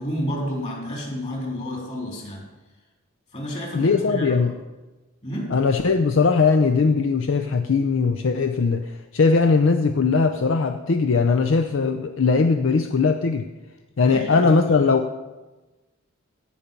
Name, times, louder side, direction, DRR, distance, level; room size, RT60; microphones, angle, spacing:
voice 1, 0.0-2.5 3.3-4.5 5.2-5.6 14.0-14.9, equal, 35° left, -1 dB, 3.2 m, -30 dB
voice 2, 3.7-4.5 5.5-13.5 14.0-15.1, left 4 dB, 65° left, 7 dB, 0.5 m, -20 dB
17.0 x 5.8 x 5.3 m, 1.1 s
head